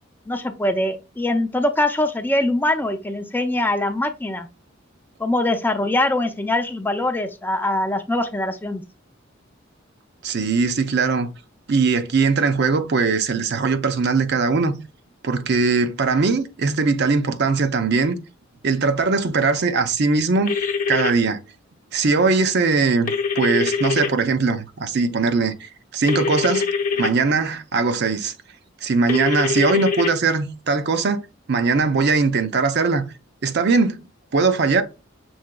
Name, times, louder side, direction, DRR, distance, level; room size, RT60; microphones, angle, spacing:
voice 1, 0.3-4.5 5.2-8.8, left 1 dB, 10° left, 0.4 m, -23 dB
voice 2, 10.2-11.3 11.7-14.8 15.2-18.2 18.6-20.6 20.9-21.4 21.9-26.7 27.0-28.3 28.8-31.2 31.5-33.1 33.4-34.0 34.3-34.8, right 4 dB, 55° right, 0.6 m, -20 dB
sound 1, 20.5-21.1 23.1-24.1 26.1-27.1 29.1-30.1, left 5 dB, 45° left, 0.8 m, -23 dB
6.2 x 3.8 x 2.2 m
head